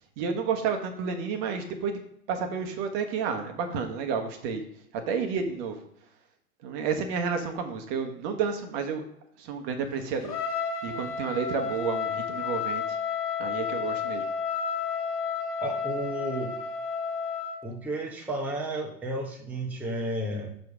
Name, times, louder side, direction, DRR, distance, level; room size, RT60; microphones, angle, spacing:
voice 1, 0.2-2.0 2.3-4.6 5.1-5.9 6.6-9.0 9.4-13.0 13.4-14.2, right 6 dB, 35° right, 6 dB, 1.2 m, -31 dB
Trumpet, 10.2-17.6, left 6 dB, 80° left, 1.5 m, -31 dB
voice 2, 15.6-16.5 17.6-20.5, right 1 dB, 5° right, -1 dB, 0.9 m, -32 dB
6.5 x 4.7 x 4.9 m, 0.71 s
figure-of-eight pair, 100°, 46 cm